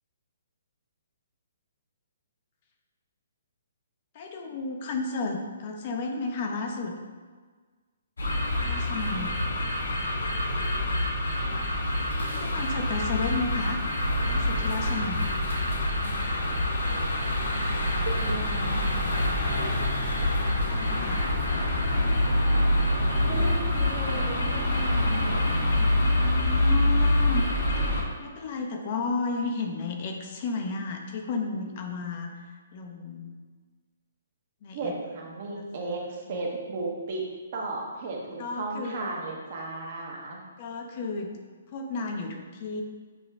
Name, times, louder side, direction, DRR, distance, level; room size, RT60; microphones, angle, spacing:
voice 1, 4.1-7.0 8.6-9.3 12.3-13.8 14.2-15.3 20.7-21.3 26.2-27.4 27.9-32.4 32.7-33.4 34.6-34.9 35.6-35.7 36.3-36.4 38.4-39.1 40.6-41.3 41.7-42.8, left 3 dB, 45° left, 2 dB, 0.5 m, -33 dB
sound 1, 8.2-28.0, left 1 dB, 85° left, 1.0 m, -26 dB
voice 2, 18.1-19.1 23.2-25.5 34.7-37.2 37.5-40.4, right 3 dB, 50° right, -1 dB, 0.9 m, -35 dB
6.0 x 2.2 x 3.5 m, 1.5 s
hypercardioid pair, 145°, 0 cm